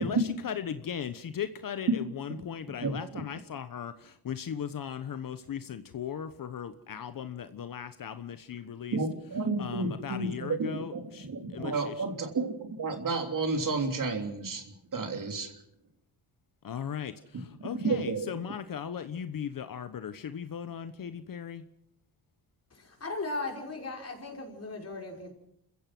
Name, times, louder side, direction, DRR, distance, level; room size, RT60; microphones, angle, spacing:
voice 1, 0.0-9.0 9.6-12.0 16.6-21.6, left 8 dB, 60° left, 11 dB, 1.2 m, -38 dB
voice 2, 8.9-14.6 14.9-15.5 17.8-18.3, right 3 dB, 55° right, 4 dB, 3.3 m, -31 dB
voice 3, 22.7-25.3, left 3 dB, 40° left, 1 dB, 5.6 m, -37 dB
28.0 x 15.5 x 6.1 m, 0.75 s
cardioid pair, 80°, 39 cm